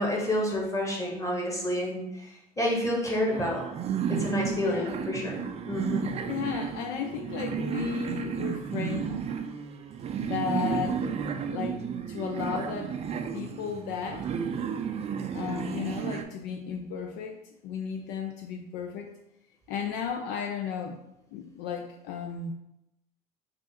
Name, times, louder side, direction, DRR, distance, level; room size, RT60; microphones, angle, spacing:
voice 1, 0.0-2.0 2.6-3.6 4.1-5.4 5.7-6.0, left 1 dB, 15° left, -1 dB, 1.3 m, -28 dB
sound 1, 3.3-16.2, right 7 dB, 30° right, 0.4 m, -33 dB
voice 2, 4.6-5.0 6.3-9.2 10.2-11.2 11.5-11.8 12.1-12.9 13.3-14.3 15.3-17.4 17.6-19.1 19.7-21.0 21.3-22.5, left 7 dB, 60° left, 4 dB, 0.4 m, -34 dB
3.2 x 2.7 x 4.1 m, 0.86 s
hypercardioid pair, 75°, 20 cm